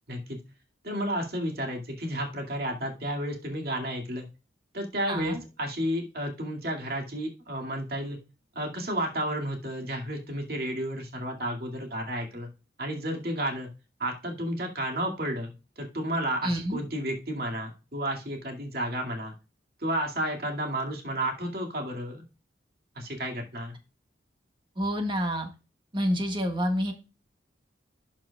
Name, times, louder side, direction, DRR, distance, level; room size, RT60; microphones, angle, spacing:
voice 1, 0.8-4.3 4.7-8.2 8.5-12.5 12.8-13.7 14.0-19.3 19.8-22.2 23.0-23.8, right 1 dB, 55° right, 1 dB, 2.3 m, -32 dB
voice 2, 5.1-5.4 16.4-16.8 24.8-25.5 25.9-26.9, equal, 25° right, 4 dB, 1.5 m, -28 dB
12.5 x 5.8 x 2.3 m, 0.30 s
head